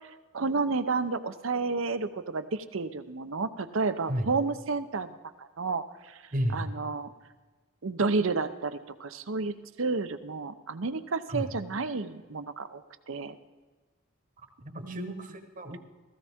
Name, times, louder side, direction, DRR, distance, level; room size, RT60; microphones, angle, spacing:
voice 1, 0.3-5.1 5.4-6.2 6.5-7.1 7.8-13.3 14.8-15.2, right 4 dB, 65° right, 12 dB, 0.7 m, -31 dB
voice 2, 6.3-6.7 11.3-11.5 14.6-15.8, equal, 40° right, 6 dB, 1.2 m, -32 dB
16.0 x 15.0 x 3.6 m, 1.3 s
head